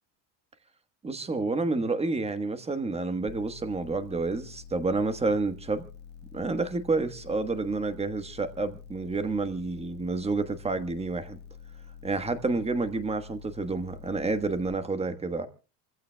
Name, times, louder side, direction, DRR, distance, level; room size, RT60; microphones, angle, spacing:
voice 1, 1.0-5.8 6.3-11.4 12.0-15.5, right 3 dB, 15° right, 1.3 m, -29 dB
sound 1, 3.3-14.7, left 7 dB, 20° left, 1.2 m, -47 dB
28.0 x 15.5 x 2.2 m
cardioid pair, 140°, 48 cm